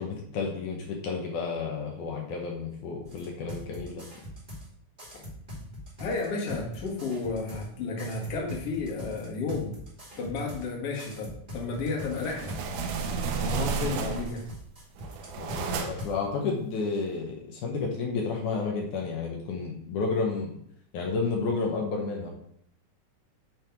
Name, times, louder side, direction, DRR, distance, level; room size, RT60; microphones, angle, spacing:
voice 1, 0.0-4.0 15.4-20.5 20.9-22.3, left 4 dB, 75° left, 0 dB, 2.4 m, -31 dB
sound 1, 3.0-4.7 5.0-7.7 8.0-10.7 11.0-15.6 16.0-16.1, left 1 dB, 15° right, 2.1 m, -42 dB
voice 2, 6.0-9.8 10.2-12.6 13.4-14.4, left 3 dB, 50° left, -1 dB, 2.3 m, -32 dB
sound 2, 12.0-14.5 15.0-16.2, right 5 dB, 80° right, 2.1 m, -32 dB
9.4 x 3.4 x 4.4 m, 0.69 s
omnidirectional pair, 3.6 m